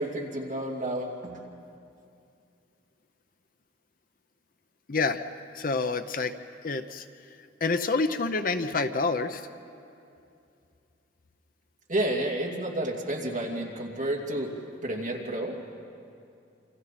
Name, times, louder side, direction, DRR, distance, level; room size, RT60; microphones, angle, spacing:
voice 1, 0.0-1.5 11.9-14.5 14.8-15.7, right 1 dB, 40° right, -2 dB, 2.7 m, -31 dB
voice 2, 4.9-5.2 5.5-6.3 6.6-7.1 7.6-9.4, left 3 dB, 45° left, 9 dB, 0.7 m, -27 dB
28.0 x 27.0 x 4.3 m, 2.6 s
head